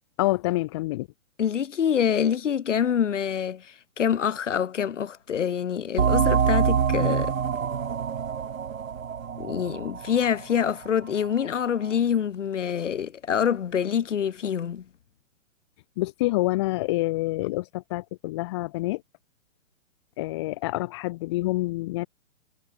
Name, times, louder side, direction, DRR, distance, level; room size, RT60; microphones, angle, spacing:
voice 1, 0.2-1.1 16.0-19.0 20.2-22.1, left 19 dB, 20° left, 1.8 m, -27 dB
voice 2, 1.4-7.3 9.4-14.8, left 8 dB, 65° left, 1.4 m, -26 dB
sound 1, 6.0-11.3, right 7 dB, 85° right, 2.0 m, -25 dB
hypercardioid pair, 170°, 39 cm